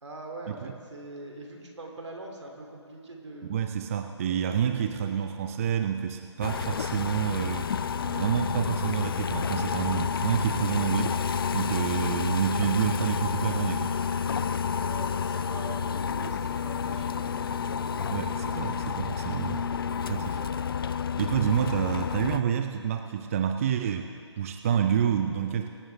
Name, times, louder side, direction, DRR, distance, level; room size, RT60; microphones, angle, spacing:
voice 1, 0.0-3.6 4.5-5.1 14.8-16.4 16.6-18.2 20.1-20.5, right 2 dB, 75° right, 1 dB, 2.9 m, -43 dB
voice 2, 3.5-7.8 8.1-11.2 11.5-13.9 18.1-19.7 20.0-20.4 21.2-24.1 24.4-25.7, right 8 dB, 30° right, 6 dB, 0.5 m, -28 dB
sound 1, 6.4-22.4, left 6 dB, 50° left, 0.5 m, -30 dB
24.5 x 8.9 x 3.5 m, 2.4 s
figure-of-eight pair, 145°, 15 cm